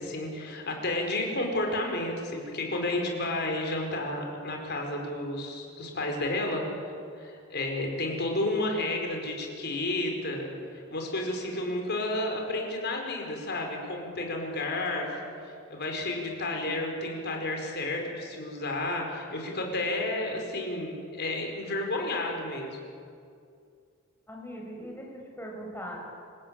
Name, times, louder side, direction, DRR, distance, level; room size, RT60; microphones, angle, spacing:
voice 1, 0.0-15.1 15.7-22.8, left 2 dB, 50° left, 2 dB, 5.1 m, -31 dB
voice 2, 24.3-26.0, equal, 10° left, -1 dB, 6.1 m, -40 dB
27.5 x 16.5 x 8.9 m, 2.4 s
head